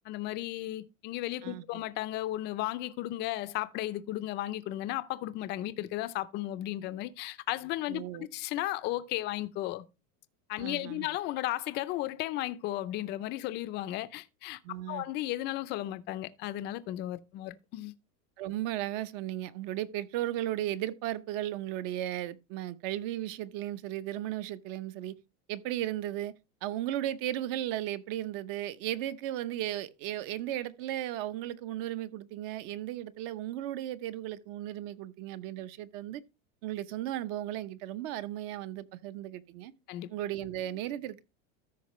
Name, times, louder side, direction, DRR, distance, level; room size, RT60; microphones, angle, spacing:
voice 1, 0.0-9.8 10.5-14.6 14.9-17.9 39.9-40.1, left 15 dB, 25° left, 0.5 m, -35 dB
voice 2, 7.9-8.3 10.6-11.1 14.6-15.0 18.4-25.1 25.5-26.3 26.6-36.2 36.6-39.7 40.1-41.2, right 13 dB, 45° right, 0.8 m, -35 dB
13.5 x 5.8 x 3.1 m
supercardioid pair, 165°, 41 cm